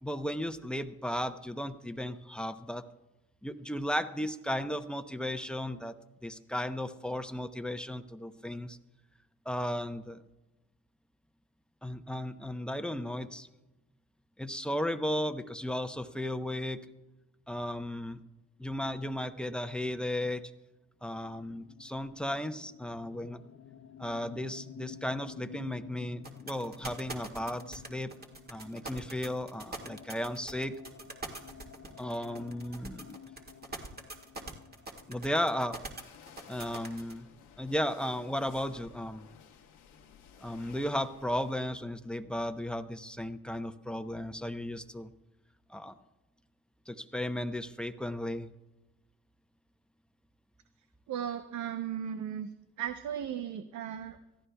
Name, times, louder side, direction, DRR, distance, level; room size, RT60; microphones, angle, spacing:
voice 1, 0.0-2.9 3.4-5.9 6.2-8.8 9.5-10.2 11.8-13.5 14.4-16.8 17.5-18.2 18.6-20.4 21.0-23.4 24.0-28.1 28.5-30.8 32.0-33.2 35.1-35.8 36.5-37.3 37.6-39.3 40.4-45.1 45.7-45.9 46.9-48.5, left 1 dB, 5° left, 8 dB, 0.8 m, -35 dB
sound 1, 21.2-36.8, left 8 dB, 60° left, 1.0 m, -52 dB
sound 2, 26.2-37.1, right 2 dB, 30° right, 1.9 m, -42 dB
sound 3, 36.0-41.6, left 7 dB, 85° left, 1.3 m, -55 dB
voice 2, 51.1-52.5 52.8-54.2, right 9 dB, 75° right, 8 dB, 0.8 m, -36 dB
25.5 x 14.5 x 2.3 m, 1.0 s
cardioid pair, 90°, 30 cm